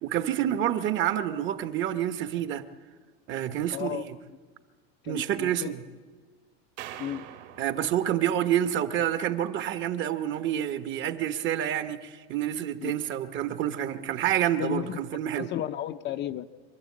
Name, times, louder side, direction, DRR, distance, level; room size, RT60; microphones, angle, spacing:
voice 1, 0.0-2.7 3.3-4.2 5.1-5.8 7.6-15.5, right 11 dB, 40° right, 1.0 m, -28 dB
voice 2, 3.7-4.0 5.0-5.7 7.0-7.3 12.8-12.9 14.6-15.0 15.4-16.5, left 11 dB, 35° left, 0.6 m, -33 dB
sound 1, 6.8-9.1, right 11 dB, 60° right, 2.0 m, -45 dB
26.0 x 11.5 x 8.5 m
supercardioid pair, 150°, 31 cm